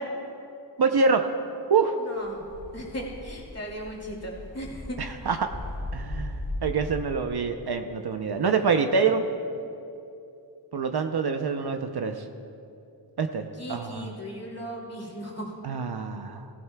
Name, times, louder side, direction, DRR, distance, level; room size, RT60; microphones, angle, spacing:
voice 1, 0.8-1.3 1.7-2.0 5.0-5.5 5.9-9.3 10.7-12.2 13.2-14.1 15.6-16.5, right 5 dB, 55° right, 6 dB, 0.7 m, -26 dB
voice 2, 2.0-2.4 2.7-5.0 13.6-15.5, equal, 30° left, -2 dB, 2.5 m, -37 dB
sound 1, 2.2-7.3, left 1 dB, 70° left, 2.0 m, -37 dB
17.0 x 15.5 x 2.3 m, 2.7 s
wide cardioid pair, 90°, 47 cm